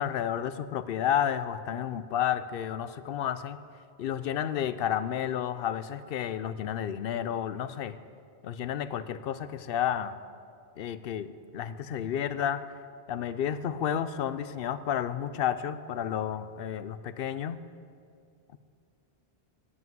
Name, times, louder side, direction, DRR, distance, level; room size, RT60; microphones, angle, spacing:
voice 1, 0.0-3.6 4.0-7.9 8.4-10.2 10.8-12.6 13.1-17.6, left 9 dB, 70° left, 13 dB, 0.7 m, -31 dB
9.9 x 8.2 x 9.3 m, 2.3 s
omnidirectional pair, 1.0 m